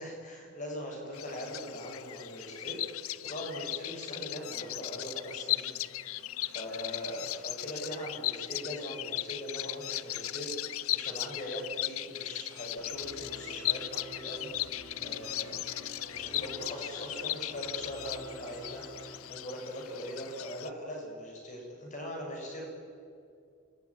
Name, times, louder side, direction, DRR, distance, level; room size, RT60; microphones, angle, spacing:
voice 1, 0.0-2.8 3.2-5.8 6.5-14.8 15.0-15.6 16.1-18.8 19.3-22.6, equal, 35° left, 0 dB, 7.0 m, -41 dB
Bird vocalization bird call bird song, 1.1-20.7, left 15 dB, 85° left, 0.6 m, -37 dB
Musical instrument, 12.8-19.2, right 1 dB, 90° right, 3.9 m, -49 dB
28.0 x 18.5 x 10.0 m, 2.4 s
head